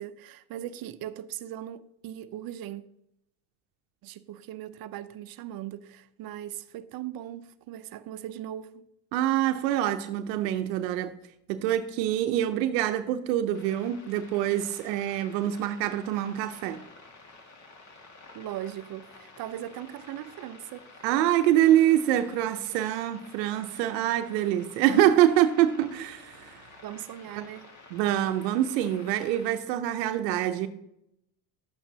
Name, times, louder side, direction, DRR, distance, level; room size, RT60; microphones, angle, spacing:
voice 1, 0.0-2.8 4.0-8.9 18.3-21.0 26.8-27.7, right 12 dB, 45° right, 0.7 m, -39 dB
voice 2, 9.1-11.1 11.5-16.8 21.0-26.6 27.9-30.7, right 12 dB, 80° right, 0.8 m, -25 dB
sound 1, 13.5-29.5, left 3 dB, 35° left, 1.9 m, -51 dB
11.5 x 8.4 x 2.8 m
hypercardioid pair, 85°, 50 cm